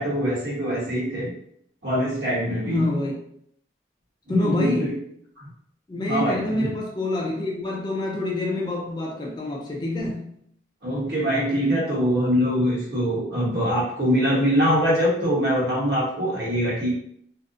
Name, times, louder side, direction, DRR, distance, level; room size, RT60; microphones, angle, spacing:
voice 1, 0.0-1.3 1.8-2.8 4.3-4.9 6.1-6.7 10.8-16.9, equal, 65° right, -5 dB, 1.0 m, -23 dB
voice 2, 2.6-3.1 4.3-5.0 5.9-10.3, left 2 dB, 25° left, -1 dB, 0.4 m, -26 dB
2.5 x 2.1 x 2.5 m, 0.67 s
head